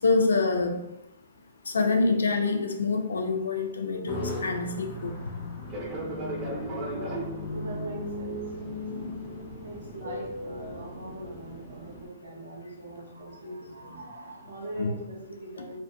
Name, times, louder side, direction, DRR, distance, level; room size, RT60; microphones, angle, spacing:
voice 1, 0.0-0.8 1.7-5.2 8.9-9.1 14.8-14.9, left 3 dB, 75° left, 4 dB, 0.4 m, -26 dB
sound 1, 4.1-11.8, left 1 dB, 40° left, 0.7 m, -38 dB
Fixed-wing aircraft airplane, 5.6-12.1, right 1 dB, 25° right, 0.7 m, -39 dB
voice 2, 7.5-8.5 9.6-15.8, right 1 dB, 65° right, -4 dB, 0.6 m, -41 dB
2.5 x 2.1 x 2.7 m, 0.87 s
figure-of-eight pair, 120°, 0 cm